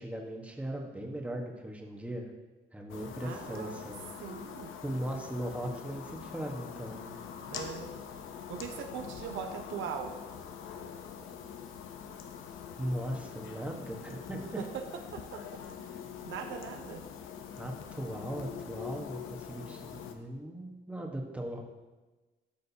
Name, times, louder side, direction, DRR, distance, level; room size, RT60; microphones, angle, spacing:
voice 1, 0.0-2.3 2.7-4.0 4.8-7.1 12.8-14.6 17.6-21.6, right 1 dB, 5° right, 1 dB, 1.3 m, -38 dB
sound 1, 2.9-20.1, left 7 dB, 85° left, 0.8 m, -44 dB
voice 2, 3.2-3.8 4.2-4.7 7.5-7.9 8.5-10.1 14.6-14.8 15.1-15.4 16.2-17.0, right 7 dB, 80° right, 5 dB, 0.9 m, -40 dB
12.5 x 6.4 x 2.9 m, 1.2 s
cardioid pair, 90°, 20 cm